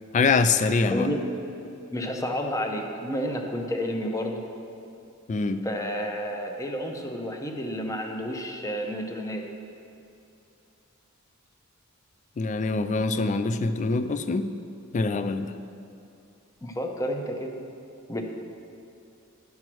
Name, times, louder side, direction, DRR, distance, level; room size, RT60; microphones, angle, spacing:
voice 1, 0.1-1.1 5.3-5.6 12.4-14.5 14.9-15.5, left 4 dB, 35° left, 10 dB, 0.4 m, -24 dB
voice 2, 0.9-1.3 1.9-4.4 5.6-9.5 16.6-17.5 18.1-18.2, equal, 15° left, 3 dB, 0.7 m, -30 dB
11.0 x 4.6 x 6.1 m, 2.7 s
head